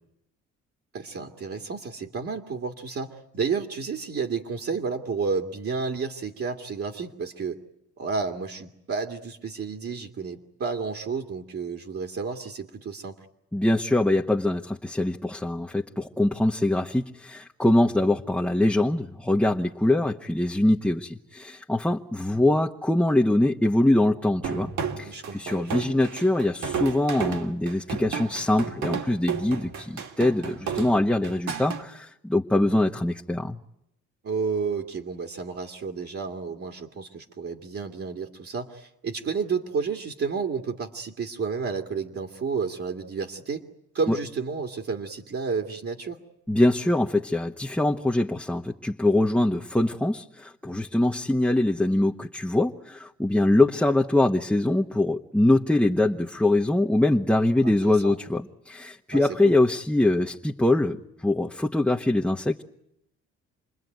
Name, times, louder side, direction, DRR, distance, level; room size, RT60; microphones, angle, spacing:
voice 1, 0.9-7.6 8.0-13.3 25.0-25.8 34.2-43.6 43.9-46.2 57.8-58.2 59.1-59.5, right 5 dB, 45° right, 1 dB, 2.4 m, -31 dB
voice 2, 13.5-24.7 25.0-33.6 44.1-44.2 46.5-62.6, left 1 dB, 5° left, 0 dB, 1.2 m, -23 dB
sound 1, 24.4-31.8, right 6 dB, 65° right, 2.8 m, -32 dB
28.0 x 21.0 x 9.4 m, 0.81 s
cardioid pair, 85°, 31 cm